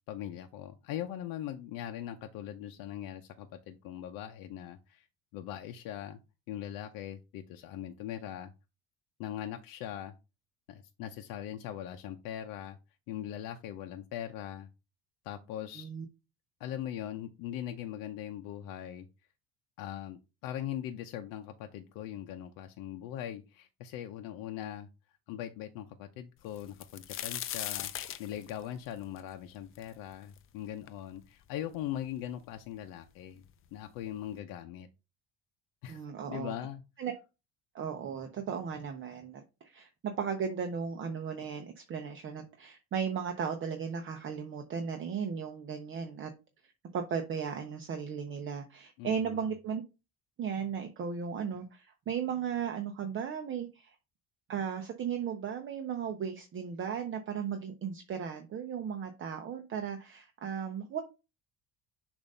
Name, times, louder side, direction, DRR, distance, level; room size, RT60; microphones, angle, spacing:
voice 1, 0.1-5.1 5.3-6.2 6.5-8.5 9.2-10.1 10.7-12.8 13.1-14.7 15.2-15.9 16.6-19.1 19.8-24.9 25.3-27.9 28.2-33.4 33.7-34.9 35.8-36.0 36.3-36.8 49.0-49.4, left 11 dB, 80° left, 5 dB, 0.7 m, -40 dB
sound 1, 26.6-30.4 30.9-31.0 31.7-31.8 32.1-32.8 33.7-33.8 34.1-34.3, left 11 dB, 40° left, 0.5 m, -39 dB
voice 2, 35.9-36.5 37.0-37.1 37.7-46.3 46.9-49.8 50.4-53.9 54.5-61.0, right 7 dB, 40° right, 5 dB, 0.8 m, -36 dB
6.9 x 2.7 x 5.4 m, 0.29 s
cardioid pair, 135°, 33 cm